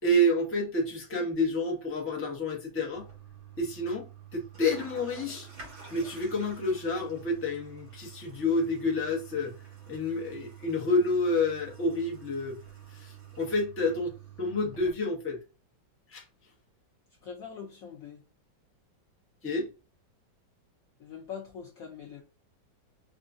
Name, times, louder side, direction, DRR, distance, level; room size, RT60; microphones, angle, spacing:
voice 1, 0.0-3.1 3.6-5.5 5.9-9.5 9.9-12.6 12.9-15.4 16.1-16.2 19.4-19.7, left 1 dB, 15° left, 0.5 m, -29 dB
Toilet flush, 2.9-14.9, right 8 dB, 70° right, 2.5 m, -48 dB
voice 2, 17.2-18.2 21.0-22.2, left 7 dB, 85° left, 0.7 m, -42 dB
4.6 x 2.4 x 2.6 m
omnidirectional pair, 2.1 m